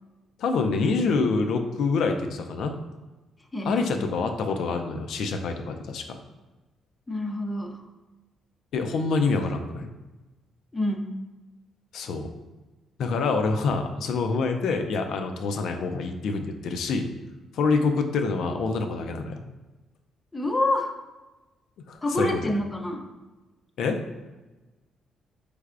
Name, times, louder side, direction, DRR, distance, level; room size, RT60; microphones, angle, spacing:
voice 1, 0.4-2.7 3.7-6.2 8.7-9.9 11.9-12.3 13.0-17.1 17.5-19.4 21.9-22.3 23.8-24.0, left 4 dB, 75° left, 5 dB, 0.5 m, -26 dB
voice 2, 3.5-3.9 7.1-7.8 10.7-11.2 20.3-20.9 22.0-23.0, left 1 dB, 20° left, 3 dB, 0.6 m, -27 dB
5.3 x 3.3 x 2.4 m, 1.2 s
cardioid pair, 90°, 0 cm